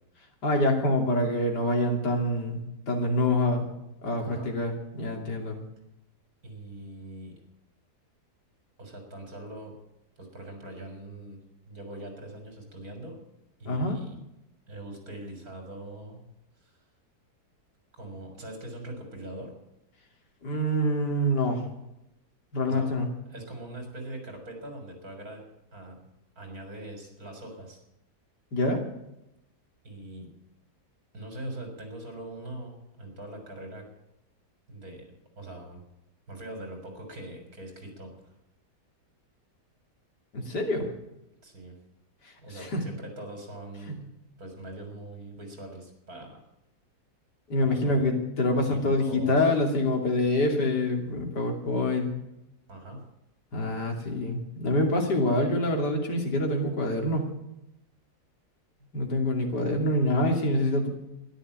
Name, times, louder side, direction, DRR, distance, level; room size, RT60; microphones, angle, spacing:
voice 1, 0.4-3.7 4.0-5.6 13.6-14.0 20.4-21.6 22.5-23.1 28.5-28.8 40.3-40.8 42.5-42.8 43.9-44.0 47.5-52.1 53.5-57.3 58.9-60.9, left 1 dB, 80° left, 2 dB, 3.2 m, -26 dB
voice 2, 4.2-4.6 6.4-7.4 8.8-9.8 10.2-13.2 13.6-14.2 14.7-16.2 16.6-16.8 17.9-19.5 22.7-22.9 23.3-25.4 25.7-26.1 26.4-27.8 29.8-30.4 31.1-33.9 34.7-35.8 36.3-38.3 41.4-41.8 42.4-44.0 44.4-46.4 47.6-48.0 48.6-49.5 52.7-53.0, right 1 dB, 60° right, 3 dB, 4.6 m, -42 dB
13.0 x 11.5 x 8.7 m, 0.87 s
omnidirectional pair, 1.8 m